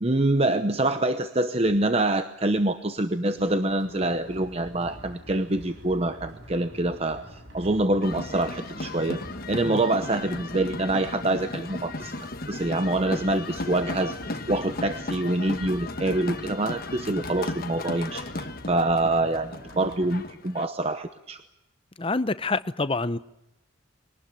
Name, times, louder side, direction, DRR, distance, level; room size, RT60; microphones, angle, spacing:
voice 1, 0.0-9.2 9.5-12.2 12.5-21.4, right 2 dB, 30° right, 9 dB, 0.9 m, -26 dB
sound 1, 3.3-20.3, equal, 65° right, 7.6 m, -46 dB
sound 2, 8.0-20.6, left 2 dB, 45° left, 1.4 m, -36 dB
voice 2, 22.0-23.2, left 3 dB, 25° left, 14 dB, 0.8 m, -27 dB
23.0 x 19.0 x 8.8 m, 0.91 s
head